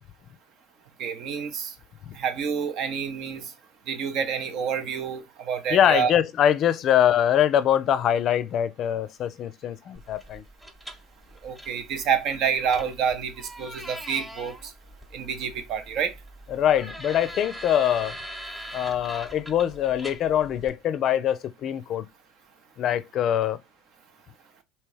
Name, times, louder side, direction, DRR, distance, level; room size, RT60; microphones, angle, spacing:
voice 1, 1.0-1.8 2.1-3.5 3.9-6.1 11.4-14.7 15.1-16.1, right 7 dB, 55° right, 0.7 m, -28 dB
voice 2, 5.7-10.4 16.5-18.2 18.7-22.0 22.8-23.6, left 10 dB, 50° left, 0.4 m, -23 dB
sound 1, 10.0-20.7, equal, 10° right, 1.1 m, -42 dB
3.4 x 2.8 x 3.2 m
hypercardioid pair, 70°, 0 cm